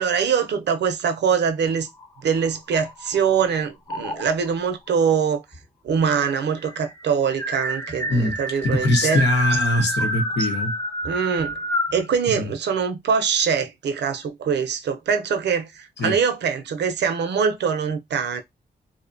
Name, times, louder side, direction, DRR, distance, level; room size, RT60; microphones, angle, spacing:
voice 1, 0.0-1.9 2.2-5.4 5.8-9.2 11.0-11.6 11.9-18.4, right 6 dB, 70° right, 0.5 m, -23 dB
sound 1, 1.9-3.4 3.9-4.5 5.5-5.6 5.9-6.0 6.3-12.0, equal, 15° left, 1.0 m, -28 dB
voice 2, 8.6-10.7 12.3-12.5 16.0-16.2, left 2 dB, 75° left, 0.9 m, -22 dB
2.6 x 2.1 x 2.5 m
cardioid pair, 70°, 18 cm